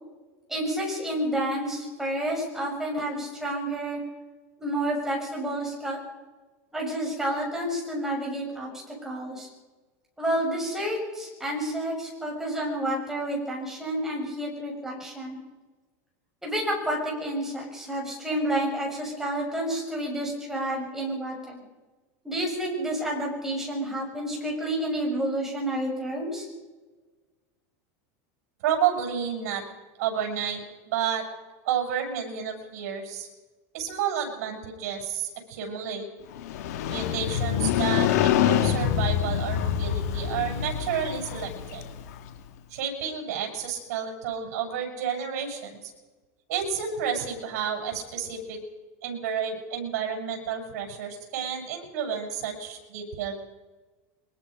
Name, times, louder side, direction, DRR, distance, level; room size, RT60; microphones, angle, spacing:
voice 1, 0.5-4.0 4.6-6.0 6.7-8.7 9.0-9.5 10.2-15.4 16.4-21.6 22.2-26.5, right 1 dB, 5° right, -2 dB, 6.7 m, -30 dB
voice 2, 28.6-29.6 30.0-31.2 31.6-33.3 33.7-36.0 36.9-41.8 42.7-45.9 46.5-48.6 49.0-53.3, right 8 dB, 75° right, 3 dB, 7.7 m, -30 dB
Motorcycle, 36.4-42.3, left 9 dB, 80° left, 2.2 m, -26 dB
23.5 x 21.0 x 5.4 m, 1.2 s
supercardioid pair, 150°, 8 cm